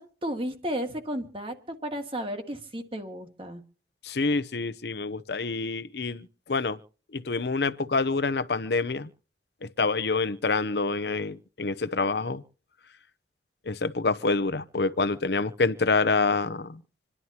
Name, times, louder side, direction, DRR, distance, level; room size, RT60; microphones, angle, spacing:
voice 1, 0.0-3.6, equal, 30° right, 1.8 m, -33 dB
voice 2, 4.0-6.8 7.1-9.1 9.6-12.4 13.7-16.8, left 3 dB, 65° left, 0.7 m, -27 dB
27.5 x 11.0 x 2.9 m
head